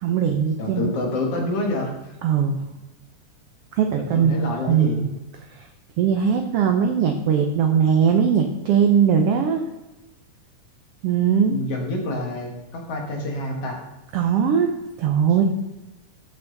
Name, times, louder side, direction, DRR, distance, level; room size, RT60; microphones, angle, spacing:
voice 1, 0.0-0.9 2.2-2.6 3.7-4.4 4.7-5.0 5.6-5.7 6.0-9.6 11.0-11.5 14.1-14.7 15.0-15.4, right 7 dB, 85° right, 5 dB, 1.3 m, -20 dB
voice 2, 0.6-1.9 4.0-5.0 11.4-13.8, left 2 dB, 55° left, 1 dB, 2.4 m, -27 dB
14.5 x 5.9 x 3.9 m, 1.0 s
omnidirectional pair, 3.7 m